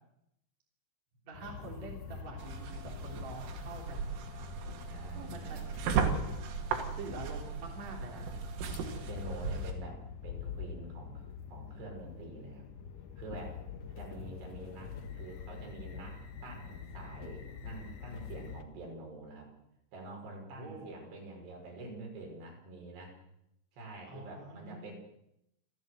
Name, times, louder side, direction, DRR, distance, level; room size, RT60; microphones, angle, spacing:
voice 1, 1.2-4.2 5.1-6.0 6.8-8.3 13.9-14.4 20.6-21.0 24.1-24.9, right 3 dB, 40° right, -1 dB, 4.0 m, -46 dB
sound 1, 1.3-18.6, left 7 dB, 65° left, 2.1 m, -45 dB
sound 2, 2.4-9.7, right 6 dB, 75° right, 5.0 m, -36 dB
voice 2, 4.9-5.7 8.6-11.2 11.5-12.7 13.2-13.6 14.0-19.5 19.9-23.2 23.7-24.9, right 2 dB, 55° right, 0 dB, 7.7 m, -47 dB
28.0 x 13.5 x 7.9 m, 0.79 s
omnidirectional pair, 5.8 m